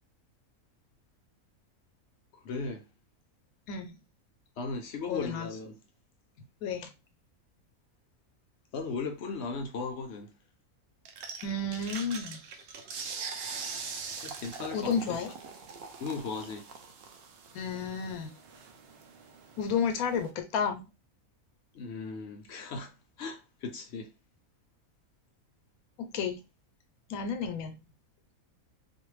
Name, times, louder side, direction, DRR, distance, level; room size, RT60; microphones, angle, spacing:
voice 1, 2.3-2.8 4.6-5.7 8.7-10.3 14.2-15.2 16.0-16.7 21.7-22.9 23.2-24.1, left 4 dB, 65° left, 0.7 m, -37 dB
voice 2, 3.7-4.0 5.1-5.5 6.6-6.9 11.4-12.4 14.7-15.3 17.5-18.3 19.6-20.9 26.0-26.4 27.1-27.8, left 5 dB, 80° left, 1.0 m, -31 dB
sound 1, 11.1-20.3, right 5 dB, 70° right, 0.5 m, -43 dB
2.5 x 2.2 x 3.1 m
omnidirectional pair, 1.5 m